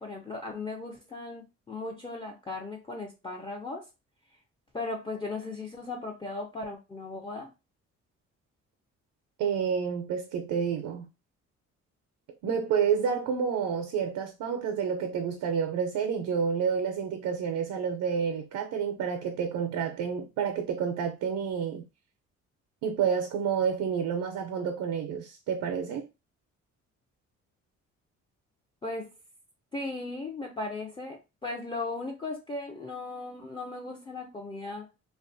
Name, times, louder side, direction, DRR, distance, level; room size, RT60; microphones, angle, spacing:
voice 1, 0.0-3.9 4.7-7.5 28.8-29.1 29.7-34.9, left 3 dB, 15° left, 0.5 m, -37 dB
voice 2, 9.4-11.1 12.4-21.9 22.8-26.1, right 7 dB, 80° right, 0.5 m, -29 dB
2.5 x 2.3 x 2.5 m
cardioid pair, 90°, 30 cm